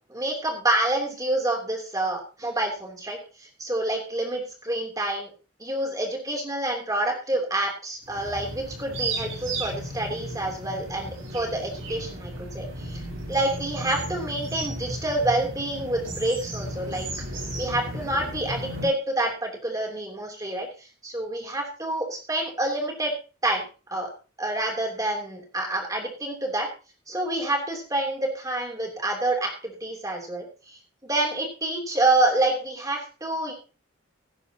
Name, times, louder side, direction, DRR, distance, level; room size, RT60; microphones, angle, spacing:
voice 1, 0.1-5.3 5.6-17.1 17.6-23.1 23.4-24.1 24.4-26.7 27.1-33.5, right 1 dB, 15° right, 2 dB, 3.2 m, -28 dB
sound 1, 8.0-18.8, right 1 dB, 85° right, 6.5 m, -34 dB
17.0 x 10.0 x 2.9 m, 0.33 s
head